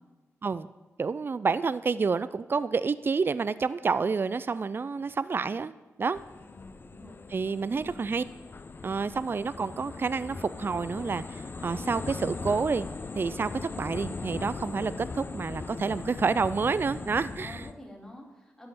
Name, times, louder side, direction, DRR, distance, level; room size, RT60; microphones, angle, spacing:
voice 1, 1.0-5.7 6.0-6.2 7.3-8.2 8.8-12.9 13.2-17.7, right 5 dB, 40° right, 16 dB, 0.4 m, -29 dB
sound 1, 6.1-17.7, left 4 dB, 40° left, 0.6 m, -39 dB
voice 2, 6.4-7.2 7.7-8.1 17.4-18.7, left 1 dB, 10° left, -2 dB, 2.8 m, -47 dB
11.0 x 5.6 x 6.9 m, 1.2 s
cardioid pair, 60°, 6 cm